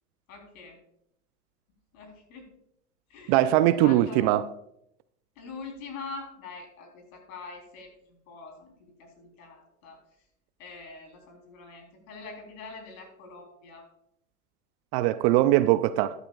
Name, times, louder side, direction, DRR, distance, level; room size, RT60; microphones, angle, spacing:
voice 1, 0.3-0.8 1.9-2.5 3.1-3.4 3.8-4.4 5.4-7.9 8.3-8.7 9.0-10.0 10.6-13.9, left 4 dB, 65° left, 3.8 m, -44 dB
voice 2, 3.3-4.4 14.9-16.1, right 14 dB, 45° right, 0.5 m, -21 dB
13.0 x 11.0 x 2.4 m
hypercardioid pair, 95°, 45 cm